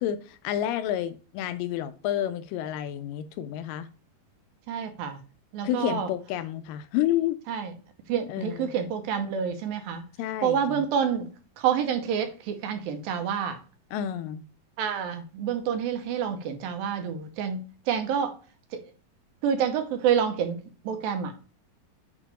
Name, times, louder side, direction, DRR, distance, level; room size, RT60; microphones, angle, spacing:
voice 1, 0.0-3.9 5.6-7.4 8.3-8.7 10.2-10.8 13.9-14.4, left 11 dB, 80° left, 2.1 m, -30 dB
voice 2, 4.7-5.2 5.5-6.1 7.5-7.7 8.1-10.0 10.4-11.3 11.6-13.6 14.8-18.4 18.7-18.9 19.4-21.3, right 8 dB, 85° right, 2.6 m, -28 dB
8.3 x 3.0 x 4.0 m
omnidirectional pair, 4.2 m